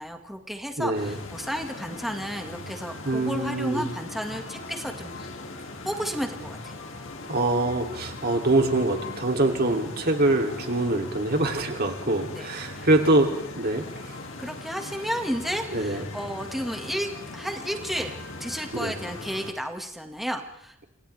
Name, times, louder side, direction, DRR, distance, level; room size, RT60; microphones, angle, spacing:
voice 1, 0.0-5.3 5.8-6.7 12.3-12.5 12.8-12.9 14.4-20.9, equal, ahead, 3 dB, 1.9 m, -32 dB
voice 2, 0.8-1.2 3.0-3.9 7.3-14.2 15.7-16.0 18.7-18.9, right 2 dB, 50° right, 3 dB, 3.0 m, -24 dB
sound 1, 0.9-19.5, left 2 dB, 70° left, 2.6 m, -40 dB
30.0 x 27.5 x 3.5 m, 0.74 s
head